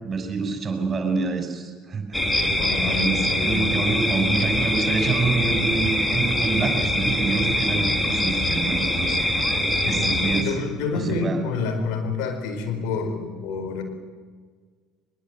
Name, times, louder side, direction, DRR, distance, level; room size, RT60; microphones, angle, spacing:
voice 1, 0.0-2.2 2.8-9.2 9.8-10.5 10.9-11.4, right 4 dB, 30° right, 6 dB, 6.3 m, -26 dB
sound 1, 2.1-10.4, left 1 dB, 10° left, 3.3 m, -23 dB
voice 2, 2.4-3.7 4.2-4.6 9.8-13.8, left 4 dB, 60° left, 5 dB, 4.7 m, -29 dB
23.0 x 22.0 x 7.9 m, 1.5 s
figure-of-eight pair, 60°, 0 cm